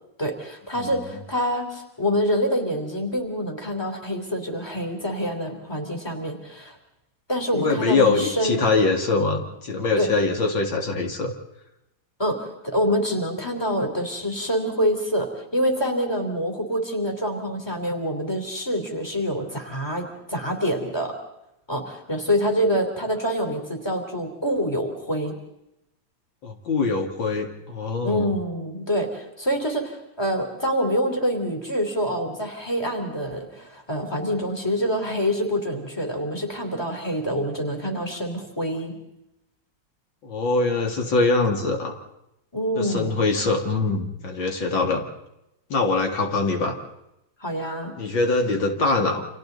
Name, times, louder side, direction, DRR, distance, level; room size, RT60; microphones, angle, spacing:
voice 1, 0.2-6.8 7.3-8.7 10.0-10.1 12.2-21.1 21.7-25.3 28.0-38.9 42.5-43.2 47.4-48.0, equal, 10° left, 3 dB, 3.2 m, -26 dB
voice 2, 7.5-11.3 26.4-28.3 40.2-42.0 42.8-45.1 45.7-46.8 48.0-49.3, left 3 dB, 75° left, 3 dB, 2.9 m, -23 dB
29.5 x 27.0 x 4.0 m, 0.86 s
omnidirectional pair, 2.1 m